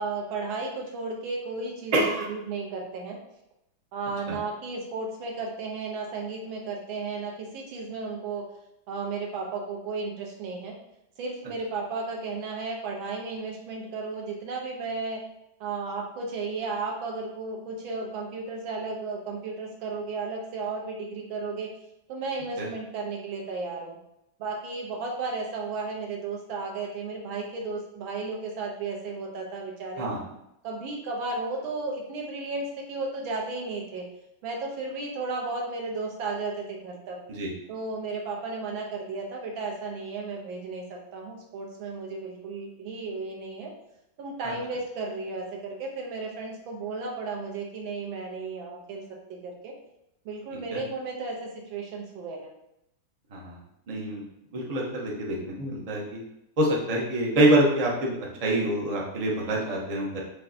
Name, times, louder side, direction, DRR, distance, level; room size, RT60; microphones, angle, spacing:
voice 1, 0.0-3.2 3.9-8.4 8.9-10.7 11.2-15.2 15.6-21.7 22.1-24.0 24.4-30.1 30.6-34.0 34.4-37.2 37.7-43.7 44.2-49.0 49.3-49.7 50.3-52.5, right 3 dB, 85° right, 0 dB, 1.6 m, -34 dB
voice 2, 1.9-2.3 4.3-4.4 22.6-22.7 30.0-30.2 37.3-37.5 44.4-44.5 50.7-50.8 53.3-53.6 53.9-54.2 54.5-56.2 56.6-60.2, right 1 dB, 55° right, -2 dB, 0.4 m, -26 dB
5.4 x 3.3 x 2.7 m, 0.82 s
omnidirectional pair, 2.1 m